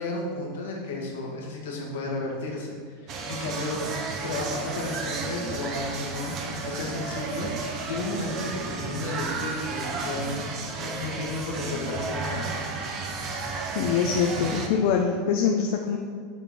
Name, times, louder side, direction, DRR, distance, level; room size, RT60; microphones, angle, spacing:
voice 1, 0.0-3.8 4.2-10.5 10.8-12.5, left 2 dB, 80° left, -1 dB, 1.5 m, -33 dB
sound 1, 3.1-14.7, right 4 dB, 45° right, 0.9 m, -33 dB
voice 2, 13.7-16.0, left 6 dB, 65° left, 2 dB, 0.5 m, -24 dB
7.0 x 4.5 x 4.1 m, 2.1 s
hypercardioid pair, 105°, 0 cm